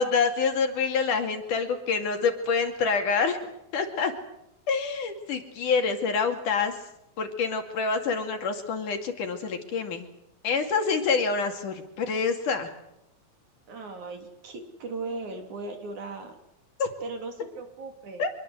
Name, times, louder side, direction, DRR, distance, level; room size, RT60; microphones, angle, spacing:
voice 1, 0.0-3.4 3.7-4.1 4.7-6.8 7.2-10.1 10.4-12.7 16.8-16.9 18.2-18.3, left 5 dB, 60° left, 5 dB, 3.7 m, -26 dB
voice 2, 13.7-16.4 17.0-18.2, right 3 dB, 55° right, 5 dB, 4.2 m, -37 dB
25.5 x 22.5 x 8.0 m, 0.80 s
omnidirectional pair, 4.3 m